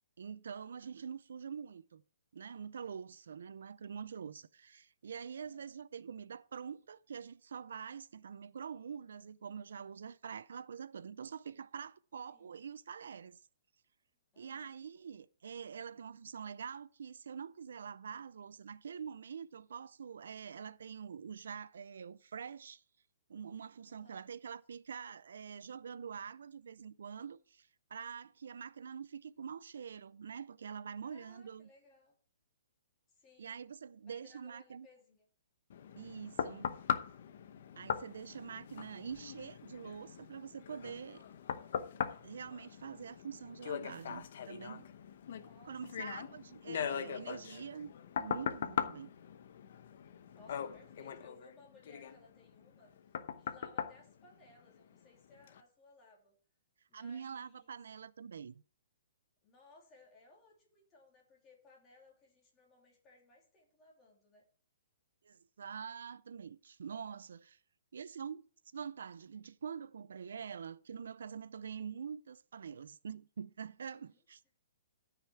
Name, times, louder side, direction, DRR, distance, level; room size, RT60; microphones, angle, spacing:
voice 1, 0.2-2.0 2.3-13.4 14.4-22.8 23.3-31.7 33.4-34.9 36.0-36.8 37.8-41.2 42.2-44.9 45.7-47.9 48.2-49.1 56.9-58.6 65.2-67.6 67.9-68.5 68.7-74.4, right 7 dB, 75° right, 0.5 m, -45 dB
voice 2, 5.4-5.7 12.3-12.5 14.3-14.7 23.9-24.2 31.0-32.1 33.1-33.6 34.0-35.3 45.3-46.4 50.3-52.9 53.4-56.3 56.9-57.7 59.4-64.5 73.9-74.2, left 2 dB, 15° left, 3.0 m, -62 dB
sound 1, 35.7-55.0 55.5-55.6, left 8 dB, 50° left, 0.8 m, -41 dB
13.5 x 5.8 x 4.6 m
hypercardioid pair, 175°, 0 cm